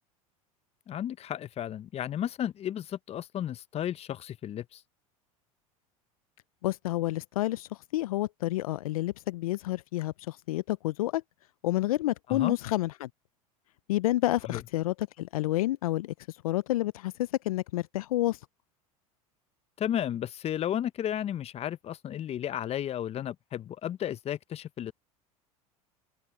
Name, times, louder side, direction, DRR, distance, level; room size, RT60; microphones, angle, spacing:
voice 1, 0.9-4.8 12.3-12.6 14.5-14.6 19.8-24.9, left 10 dB, 35° left, 0.8 m, -33 dB
voice 2, 6.6-11.2 11.6-13.1 13.9-16.1 16.4-18.4, left 16 dB, 75° left, 0.7 m, -29 dB
open air
hypercardioid pair, 85°, 19 cm